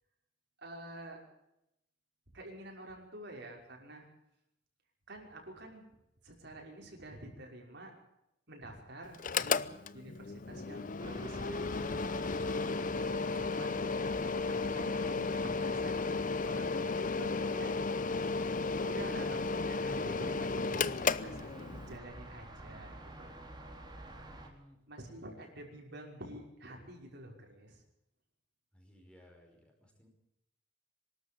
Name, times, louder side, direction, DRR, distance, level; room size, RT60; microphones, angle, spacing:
voice 1, 0.6-1.2 2.3-4.1 5.1-5.8 6.2-7.9 8.5-9.6 9.9-12.2 13.3-13.8 14.5-16.0 16.4-17.7 18.9-23.3 24.9-27.8, right 1 dB, 65° right, 1 dB, 5.7 m, -48 dB
Mechanical fan, 9.1-22.0, left 4 dB, 45° left, 0.7 m, -34 dB
sound 1, 11.0-24.5, right 1 dB, 25° right, 4.0 m, -49 dB
voice 2, 24.4-24.8 28.7-30.1, equal, 5° left, 1 dB, 5.4 m, -61 dB
24.0 x 13.5 x 8.5 m, 0.84 s
head